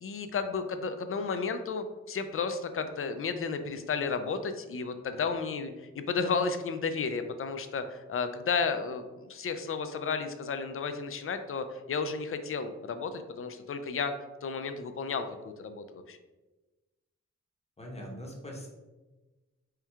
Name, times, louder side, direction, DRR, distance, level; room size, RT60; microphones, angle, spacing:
voice 1, 0.0-14.1 14.4-16.2, left 5 dB, 50° left, 9 dB, 0.4 m, -33 dB
voice 2, 17.8-18.7, equal, 20° left, -1 dB, 1.0 m, -42 dB
4.5 x 2.3 x 3.4 m, 1.2 s
wide cardioid pair, 85°, 30 cm